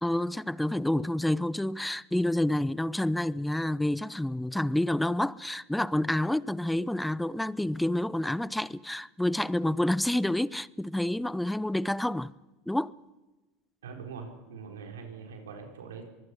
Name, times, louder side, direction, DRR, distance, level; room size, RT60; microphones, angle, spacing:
voice 1, 0.0-12.3 12.7-12.9, left 1 dB, 5° left, 0.6 m, -28 dB
voice 2, 13.8-16.0, right 5 dB, 75° right, 4.3 m, -43 dB
24.5 x 20.5 x 6.1 m
hypercardioid pair, 85°, 0 cm